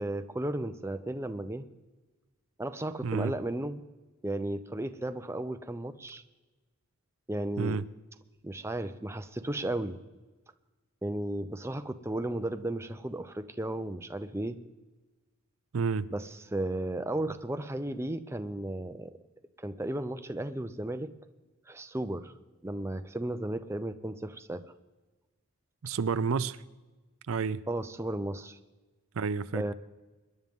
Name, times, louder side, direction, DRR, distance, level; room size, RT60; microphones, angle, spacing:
voice 1, 0.0-1.7 2.6-3.8 4.2-6.2 7.3-7.8 8.4-10.0 11.0-14.6 16.1-19.1 19.6-21.1 21.7-22.3 22.6-24.7 27.7-28.6 29.5-29.7, right 1 dB, 10° right, 0.5 m, -34 dB
voice 2, 3.0-3.3 7.6-7.8 15.7-16.1 25.8-26.6 27.3-27.6 29.2-29.6, right 5 dB, 65° right, 0.4 m, -30 dB
25.0 x 11.0 x 3.6 m
head